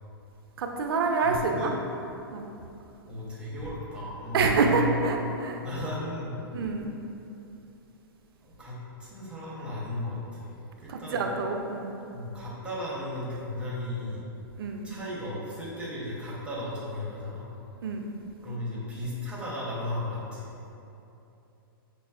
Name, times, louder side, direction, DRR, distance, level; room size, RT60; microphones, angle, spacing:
voice 1, 0.6-1.7 2.3-2.4 4.3-5.6 6.5-6.9 10.9-11.9 14.6-14.9 17.8-18.1, right 4 dB, 70° right, 3 dB, 0.4 m, -27 dB
voice 2, 1.1-1.7 3.1-5.2 5.6-6.5 8.4-10.5 10.8-11.3 12.1-14.2 14.8-17.5 18.4-20.7, left 1 dB, 10° right, -7 dB, 0.7 m, -35 dB
5.2 x 2.0 x 2.4 m, 2.9 s
hypercardioid pair, 130°, 13 cm